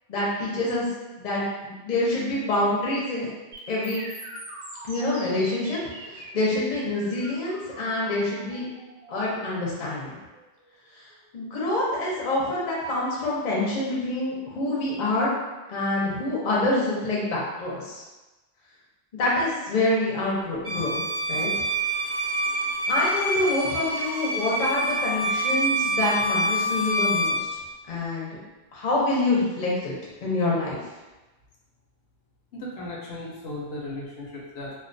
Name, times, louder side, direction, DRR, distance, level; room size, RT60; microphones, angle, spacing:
voice 1, 0.1-0.8 1.2-3.3 3.7-4.0 4.8-5.8 6.1-8.7 9.1-10.2 11.3-15.4 15.7-18.0 19.1-21.0 21.3-21.5 22.9-27.5 27.9-28.3 28.7-29.9 30.2-30.8, left 2 dB, 50° left, -5 dB, 0.7 m, -26 dB
sound 1, 3.5-11.5, right 1 dB, 70° right, 0.8 m, -43 dB
Bowed string instrument, 20.6-27.4, right 1 dB, 85° right, 1.1 m, -26 dB
voice 2, 32.5-34.7, left 1 dB, 80° left, -4 dB, 0.9 m, -36 dB
2.4 x 2.2 x 2.5 m, 1.1 s
omnidirectional pair, 1.1 m